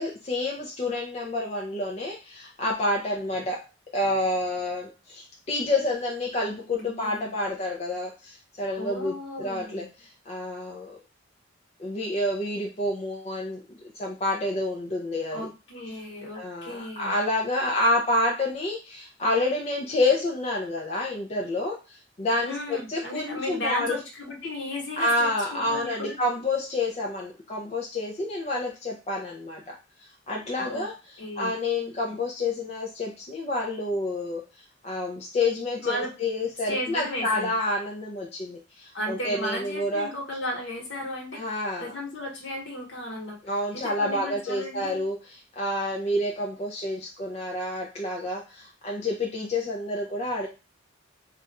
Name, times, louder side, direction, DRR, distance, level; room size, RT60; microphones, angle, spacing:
voice 1, 0.0-3.6 3.9-11.0 11.8-13.6 13.9-15.5 16.3-24.0 25.0-34.4 34.8-40.1 41.3-41.9 43.4-50.5, left 2 dB, 30° left, -1 dB, 0.4 m, -29 dB
voice 2, 6.8-7.3 8.8-9.9 15.3-17.1 22.4-26.2 30.6-30.9 31.2-31.5 35.8-36.1 36.7-37.5 38.9-41.5 41.8-43.4 43.7-45.0, left 1 dB, 60° left, 0 dB, 1.2 m, -35 dB
2.4 x 2.3 x 4.0 m, 0.30 s
head